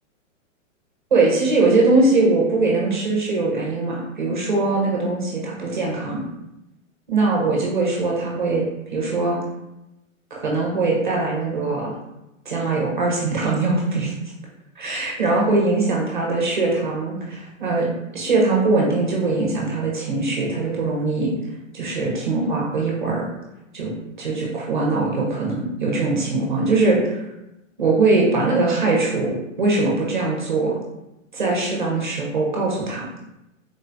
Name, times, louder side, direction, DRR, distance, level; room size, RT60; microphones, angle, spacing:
voice 1, 1.1-6.2 7.1-8.7 8.9-9.4 10.3-11.9 12.5-14.1 14.8-21.3 21.7-23.3 23.7-27.2 27.8-30.8 31.3-33.1, right 3 dB, 40° right, -3 dB, 0.5 m, -21 dB
3.6 x 2.2 x 2.5 m, 0.92 s
hypercardioid pair, 180°, 40 cm